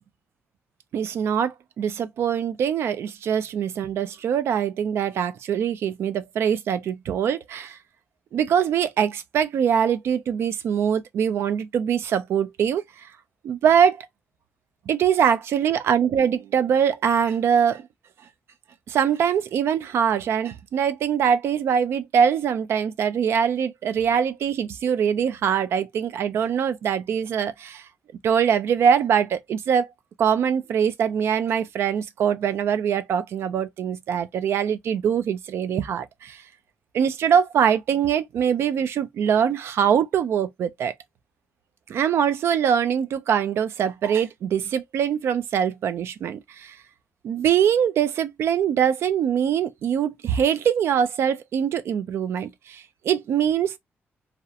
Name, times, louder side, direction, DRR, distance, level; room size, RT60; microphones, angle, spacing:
voice 1, 0.9-7.8 8.3-13.1 13.4-14.1 14.9-17.8 18.9-27.9 28.2-29.9 30.2-36.4 36.9-40.9 41.9-46.8 47.2-53.8, right 8 dB, 75° right, 0.4 m, -23 dB
2.8 x 2.1 x 2.3 m
wide cardioid pair, 180°, 4 cm